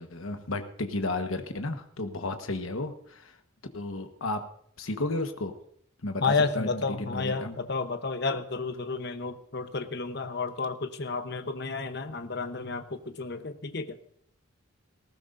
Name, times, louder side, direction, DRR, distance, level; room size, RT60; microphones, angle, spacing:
voice 1, 0.0-3.4 3.7-4.4 4.8-5.6 6.0-6.7 7.0-7.5, left 2 dB, 75° left, 7 dB, 1.3 m, -33 dB
voice 2, 6.2-14.0, left 4 dB, 50° left, 9 dB, 0.9 m, -31 dB
18.5 x 15.0 x 2.6 m, 0.69 s
head